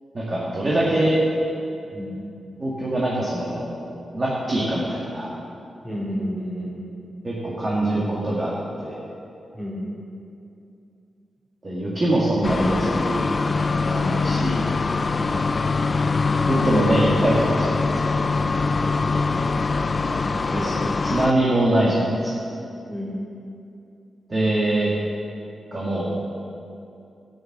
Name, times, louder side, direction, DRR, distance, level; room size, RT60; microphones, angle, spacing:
voice 1, 0.1-1.1 2.6-3.8 4.1-5.3 7.2-8.5 8.8-9.0 11.6-13.5 13.8-14.6 16.5-18.0 20.5-22.3 24.3-24.9 25.7-26.1, right 1 dB, 30° right, -6 dB, 2.0 m, -23 dB
voice 2, 5.8-6.7 9.5-9.8 15.1-15.8 18.8-19.2 22.8-23.1, equal, 10° right, -7 dB, 3.2 m, -32 dB
sound 1, 12.4-21.3, left 4 dB, 35° left, 0.4 m, -23 dB
11.5 x 9.0 x 6.1 m, 2.6 s
wide cardioid pair, 120°, 0 cm